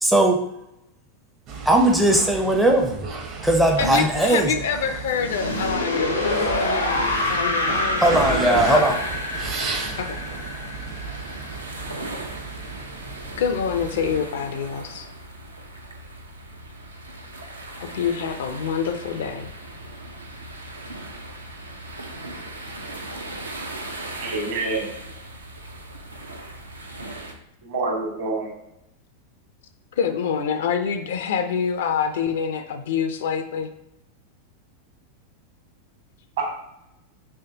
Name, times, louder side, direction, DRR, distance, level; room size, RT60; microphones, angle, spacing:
voice 1, 0.0-0.4 1.7-3.1 3.4-4.5 8.0-8.9, right 1 dB, 5° right, 1 dB, 0.5 m, -18 dB
sound 1, 1.5-14.2, right 4 dB, 40° right, 0.7 m, -34 dB
voice 2, 3.8-7.0 7.3-8.8 10.0-10.2 13.3-15.1 17.8-19.5 30.0-33.7, left 6 dB, 60° left, 8 dB, 0.4 m, -26 dB
sound 2, 5.1-12.0, left 1 dB, 85° left, 0.8 m, -27 dB
sound 3, 8.4-27.3, right 2 dB, 80° right, 0.6 m, -38 dB
voice 3, 24.2-24.9 27.6-28.5 36.4-36.5, right 3 dB, 60° right, 0 dB, 1.4 m, -26 dB
5.6 x 3.2 x 2.7 m, 0.84 s
figure-of-eight pair, 90°, 0 cm